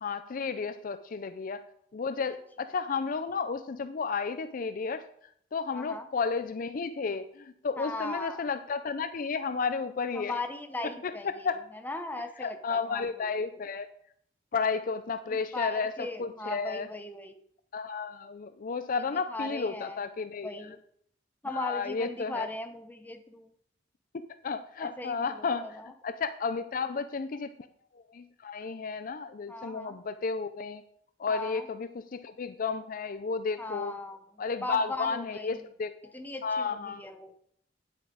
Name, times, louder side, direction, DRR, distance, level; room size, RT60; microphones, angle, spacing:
voice 1, 0.0-1.6 1.9-5.0 5.5-10.4 11.0-11.6 12.4-13.9 14.5-15.9 16.2-16.9 17.7-20.8 21.5-22.5 24.4-25.7 26.0-27.5 27.9-30.8 31.2-33.9 34.4-36.1 36.4-37.0, left 5 dB, 50° left, 11 dB, 0.4 m, -32 dB
voice 2, 5.7-6.1 7.8-8.4 10.1-13.3 15.3-17.4 19.3-20.1 20.4-20.8 21.4-23.5 24.8-25.9 29.5-30.0 31.3-31.7 33.6-35.7 36.1-37.3, left 2 dB, 10° left, 6 dB, 0.8 m, -38 dB
9.9 x 8.2 x 3.9 m, 0.67 s
head